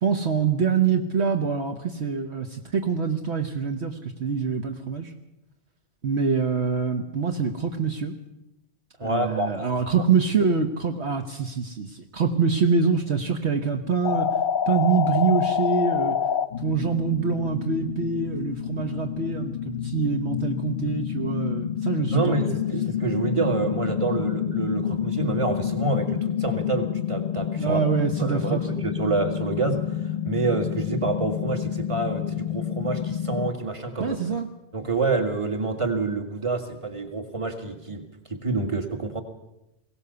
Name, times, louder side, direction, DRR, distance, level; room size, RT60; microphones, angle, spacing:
voice 1, 0.0-5.1 6.0-8.1 9.0-14.3 14.7-16.2 16.6-22.4 27.6-28.8 34.0-34.5, right 5 dB, 60° right, 4 dB, 1.4 m, -25 dB
voice 2, 9.0-9.7 22.1-27.8 28.2-34.2 34.7-39.2, right 3 dB, 25° right, 5 dB, 2.0 m, -27 dB
sound 1, 14.0-33.5, left 9 dB, 45° left, 0.9 m, -28 dB
21.5 x 17.5 x 6.9 m, 0.88 s
omnidirectional pair, 1.3 m